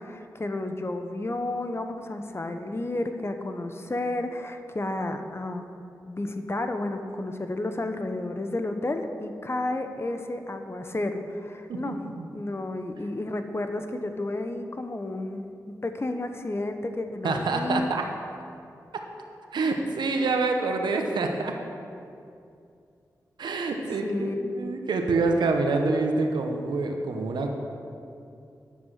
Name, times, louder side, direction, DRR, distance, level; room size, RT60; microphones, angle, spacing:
voice 1, 0.0-5.7 6.0-12.0 12.3-17.9 24.0-24.6, left 2 dB, 35° left, 7 dB, 1.0 m, -31 dB
voice 2, 11.7-12.3 17.2-18.0 19.5-21.5 23.4-24.3 24.5-27.5, right 3 dB, 85° right, 4 dB, 1.0 m, -26 dB
10.0 x 7.4 x 6.5 m, 2.5 s
cardioid pair, 45°, 7 cm